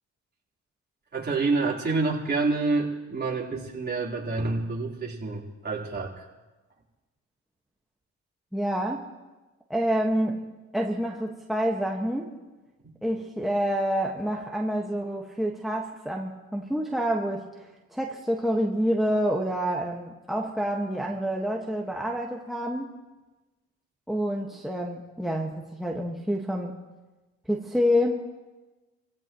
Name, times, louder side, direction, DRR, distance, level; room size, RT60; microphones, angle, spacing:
voice 1, 1.1-6.2, right 3 dB, 35° right, -4 dB, 4.0 m, -28 dB
voice 2, 8.5-9.0 9.7-10.4 10.7-12.3 13.0-17.5 17.9-22.9 24.1-26.8 27.5-28.2, equal, ahead, -2 dB, 1.6 m, -27 dB
28.5 x 16.0 x 3.1 m, 1.1 s
cardioid pair, 90°, 30 cm